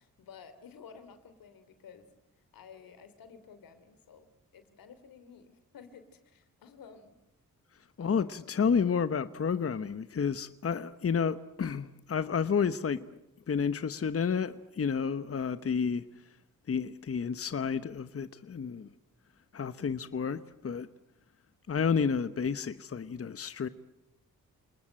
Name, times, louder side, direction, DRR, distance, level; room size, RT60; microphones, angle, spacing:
voice 1, 0.0-2.1 2.5-7.2 8.0-8.4, left 6 dB, 85° left, 3.0 m, -52 dB
voice 2, 8.0-13.1 13.5-16.0 16.7-18.9 19.5-20.9 21.7-23.7, left 6 dB, 45° left, 1.1 m, -30 dB
29.0 x 20.0 x 8.9 m
cardioid pair, 70°, 33 cm